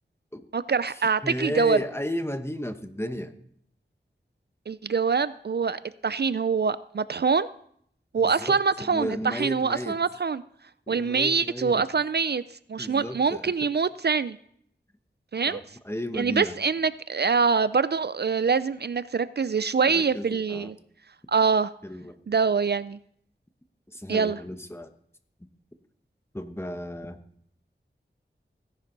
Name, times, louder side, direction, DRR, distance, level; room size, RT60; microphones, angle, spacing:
voice 1, 0.5-1.8 4.7-7.5 8.1-10.4 10.9-12.4 12.7-14.4 15.3-15.6 16.1-20.8 21.3-21.7 22.3-23.0 24.1-24.4, right 5 dB, 55° right, 15 dB, 0.4 m, -24 dB
voice 2, 1.2-3.3 8.2-10.0 10.9-11.8 12.8-13.5 15.5-16.6 19.8-20.7 21.8-22.2 23.9-24.9 26.3-27.2, left 1 dB, 10° left, 8 dB, 1.2 m, -33 dB
17.0 x 10.5 x 4.0 m, 0.67 s
wide cardioid pair, 45°, 20 cm